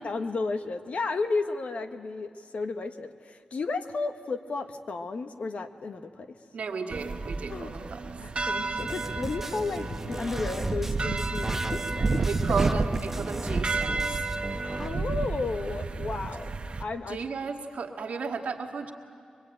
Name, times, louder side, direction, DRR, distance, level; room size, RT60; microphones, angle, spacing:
voice 1, 0.0-6.3 7.5-7.8 8.2-12.6 14.6-16.5 16.8-17.2, left 3 dB, 65° left, 7 dB, 1.3 m, -33 dB
voice 2, 6.5-8.1 12.3-14.2 17.1-18.9, right 5 dB, 85° right, 2 dB, 1.8 m, -34 dB
sound 1, 6.9-16.8, right 3 dB, 50° right, 1.1 m, -31 dB
sound 2, 8.8-14.9, right 1 dB, 10° right, 1.1 m, -37 dB
23.0 x 23.0 x 9.0 m, 2.3 s
wide cardioid pair, 95°, 2 cm